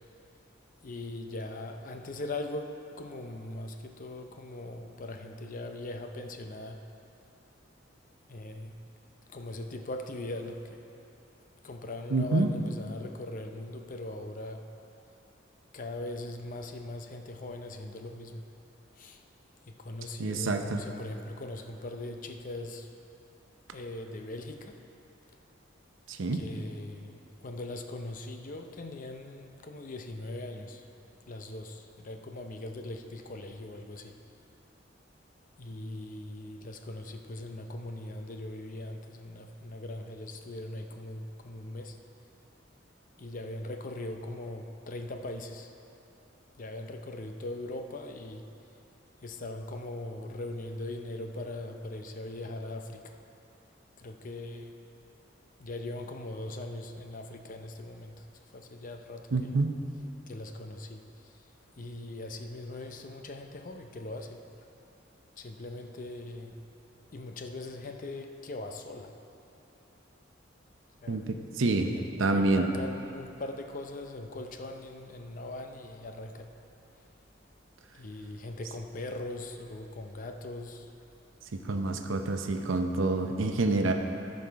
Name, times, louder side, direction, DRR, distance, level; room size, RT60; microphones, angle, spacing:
voice 1, 0.8-6.8 8.3-8.8 9.3-10.8 11.6-14.7 15.7-18.5 18.9-19.2 19.7-22.9 23.7-24.8 26.3-30.9 31.3-34.2 35.6-42.0 43.2-45.7 46.6-48.5 49.2-53.2 54.0-54.7 55.6-59.5 60.3-61.5 61.8-64.4 65.4-66.6 67.1-69.2 71.0-71.3 72.0-76.5 77.9-80.9 83.8-83.9, left 2 dB, 45° left, 5 dB, 0.6 m, -40 dB
voice 2, 12.1-12.5 20.2-20.8 26.1-26.4 59.3-59.7 71.1-71.9 72.2-72.7 81.5-83.9, right 2 dB, 80° right, 5 dB, 0.7 m, -27 dB
14.5 x 5.3 x 4.6 m, 2.9 s
head